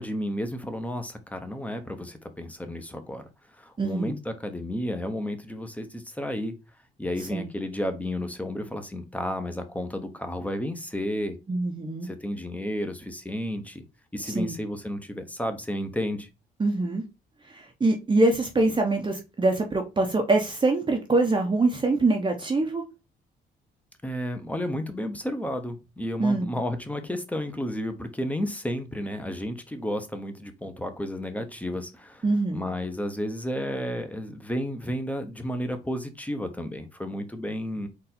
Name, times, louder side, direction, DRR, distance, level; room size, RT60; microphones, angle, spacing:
voice 1, 0.0-3.3 3.6-6.5 7.0-11.4 12.0-13.8 14.1-16.3 24.0-32.2 32.5-37.9, equal, 5° left, 0.9 m, -32 dB
voice 2, 3.8-4.2 7.3-7.5 11.5-12.1 14.2-14.5 16.6-17.0 17.4-22.8 26.2-26.5 32.2-32.7, right 2 dB, 25° right, 0.8 m, -24 dB
4.1 x 2.6 x 4.2 m
cardioid pair, 90°, 20 cm